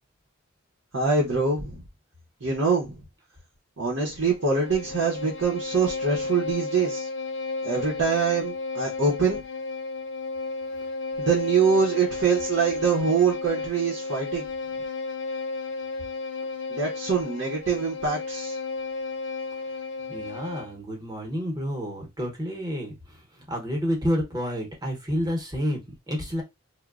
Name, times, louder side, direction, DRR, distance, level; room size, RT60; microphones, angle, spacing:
voice 1, 0.9-1.8 2.4-2.9 3.8-7.1 7.6-9.4 11.2-14.5 16.7-18.6, right 5 dB, 70° right, 0.7 m, -24 dB
Bowed string instrument, 4.2-20.8, left 3 dB, 65° left, 0.5 m, -33 dB
voice 2, 20.1-26.4, equal, 20° right, 0.8 m, -30 dB
3.0 x 2.1 x 2.3 m
head